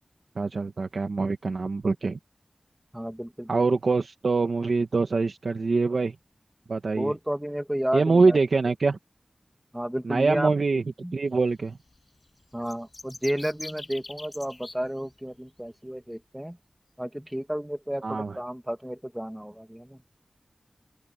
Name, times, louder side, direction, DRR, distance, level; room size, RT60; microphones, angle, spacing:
voice 1, 0.3-2.2 3.5-6.1 6.7-7.1 7.9-9.0 10.0-10.8 11.1-11.8 18.0-18.3, right 4 dB, 85° right, 1.4 m, -24 dB
voice 2, 2.9-3.7 6.9-8.4 9.7-11.1 12.5-16.6 17.0-20.0, equal, 10° right, 2.0 m, -32 dB
sound 1, 12.6-14.8, left 2 dB, 45° left, 5.8 m, -42 dB
open air
wide cardioid pair, 60°, 0 cm